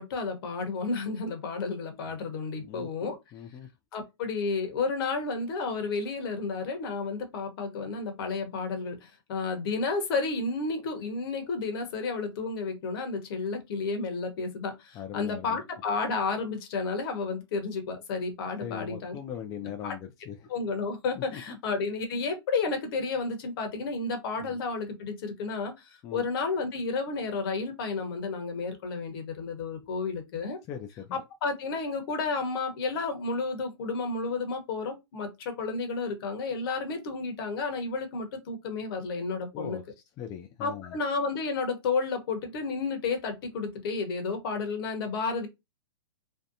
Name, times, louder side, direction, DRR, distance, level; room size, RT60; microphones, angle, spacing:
voice 1, 0.0-3.2 3.9-19.2 19.8-20.0 20.5-30.6 31.1-39.8 40.6-45.5, left 4 dB, 55° left, 1.0 m, -31 dB
voice 2, 2.6-3.7 15.0-15.6 18.6-20.3 21.3-21.6 24.4-24.6 26.0-26.2 30.7-31.2 39.5-39.8 40.2-41.0, left 9 dB, 25° left, 0.3 m, -40 dB
2.7 x 2.1 x 2.6 m
hypercardioid pair, 125°, 14 cm